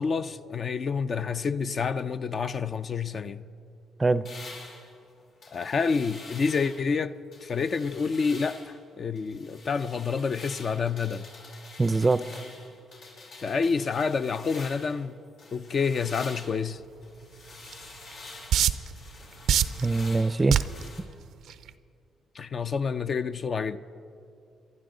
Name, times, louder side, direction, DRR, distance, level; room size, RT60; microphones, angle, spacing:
voice 1, 0.0-3.4 5.5-7.1 7.4-11.3 13.4-15.2 15.5-16.8 22.3-23.8, left 5 dB, 45° left, 0.5 m, -28 dB
sound 1, 4.3-6.9 7.3-8.8 9.2-15.0 15.4-21.0, left 3 dB, 75° left, 4.7 m, -47 dB
voice 2, 11.8-12.4 19.8-20.5, right 3 dB, 20° right, 0.5 m, -23 dB
sound 2, 17.7-17.8 18.5-18.9 19.5-19.8 20.5-20.8 21.5-21.7, right 10 dB, 75° right, 0.5 m, -21 dB
28.0 x 12.0 x 3.9 m
cardioid pair, 90°, 0 cm